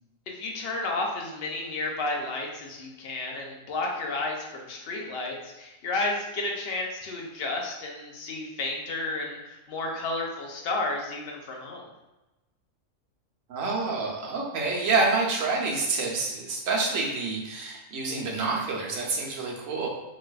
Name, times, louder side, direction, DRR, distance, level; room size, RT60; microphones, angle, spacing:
voice 1, 0.4-11.8, left 2 dB, 55° left, 0 dB, 0.8 m, -32 dB
voice 2, 13.5-19.9, right 3 dB, 80° right, -2 dB, 1.1 m, -27 dB
3.9 x 2.5 x 2.3 m, 1.0 s
omnidirectional pair, 1.4 m